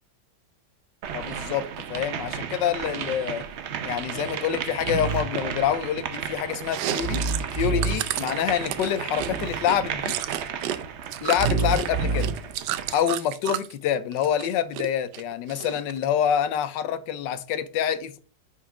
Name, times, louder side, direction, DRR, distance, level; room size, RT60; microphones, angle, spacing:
sound 1, 1.0-13.1, right 8 dB, 65° right, 0.7 m, -34 dB
voice 1, 1.1-3.5 3.8-7.2 7.5-10.2 11.2-12.3 12.9-18.2, left 9 dB, 90° left, 1.3 m, -26 dB
sound 2, 4.8-5.2 7.0-7.9 9.2-9.6 11.3-12.3, right 4 dB, 35° right, 1.7 m, -26 dB
Chewing mastication, 6.6-10.8 11.0-13.7 14.1-14.9 15.1-16.0, right 12 dB, 80° right, 1.2 m, -31 dB
5.7 x 4.8 x 4.8 m
omnidirectional pair, 1.9 m